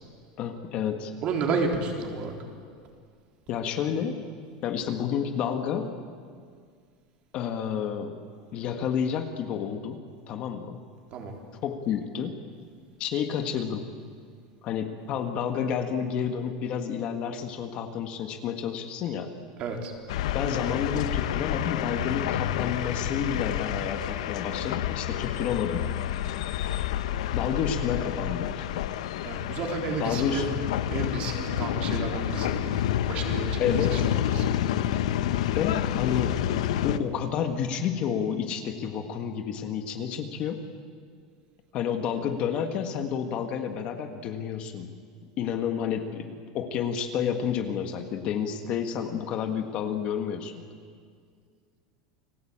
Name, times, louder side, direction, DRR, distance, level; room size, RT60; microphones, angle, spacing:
voice 1, 0.4-1.1 3.5-4.3 4.6-6.0 7.3-8.2 8.5-10.0 10.3-10.8 11.6-12.4 13.0-13.9 14.6-19.3 20.3-25.9 27.3-28.7 30.0-30.6 33.6-34.0 35.4-36.4 36.8-40.6 41.7-44.9 45.4-50.5, left 8 dB, 35° left, 6 dB, 1.6 m, -30 dB
voice 2, 1.2-2.3 11.1-11.4 19.6-19.9 29.2-30.5 30.9-32.7 33.1-34.5, right 4 dB, 35° right, 2 dB, 3.8 m, -31 dB
sound 1, 20.1-37.0, left 11 dB, 90° left, 1.1 m, -29 dB
29.5 x 20.0 x 8.8 m, 2.1 s
supercardioid pair, 170°, 3 cm